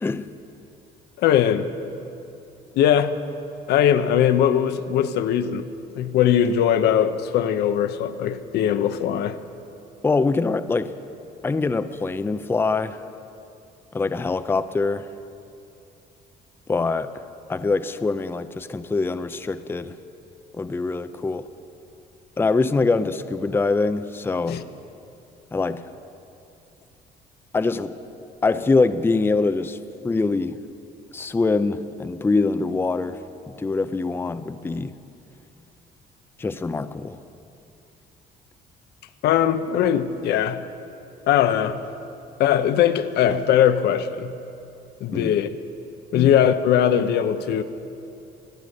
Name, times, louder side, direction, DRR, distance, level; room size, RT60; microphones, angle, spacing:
voice 1, 0.0-0.3 10.0-10.9 11.4-13.0 13.9-15.1 16.7-17.1 17.5-20.0 20.5-21.5 22.4-24.6 25.5-25.9 27.5-28.0 28.4-29.8 30.0-30.6 31.1-33.2 33.5-34.9 36.4-37.2 45.1-45.3 46.1-46.3, left 3 dB, 15° left, 11 dB, 0.5 m, -24 dB
voice 2, 1.2-1.7 2.8-3.2 3.7-5.6 6.0-9.4 24.5-24.6 39.2-40.6 41.3-41.8 42.4-44.3 45.0-45.6 46.1-47.6, left 9 dB, 75° left, 10 dB, 0.8 m, -20 dB
24.0 x 8.1 x 6.6 m, 2.7 s
cardioid pair, 110°, 17 cm